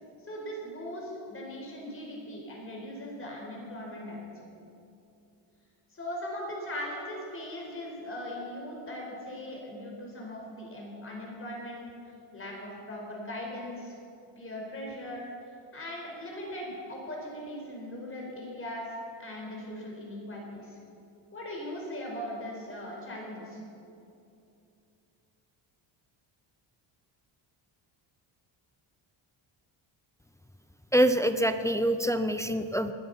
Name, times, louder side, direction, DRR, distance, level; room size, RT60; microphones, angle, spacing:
voice 1, 0.3-4.4 5.9-11.9 12.3-14.0 14.4-20.8 21.3-23.6, left 1 dB, 25° left, -1 dB, 4.7 m, -39 dB
voice 2, 30.9-32.9, right 1 dB, 5° left, 9 dB, 0.4 m, -25 dB
20.5 x 12.5 x 5.6 m, 2.7 s
cardioid pair, 130°, 49 cm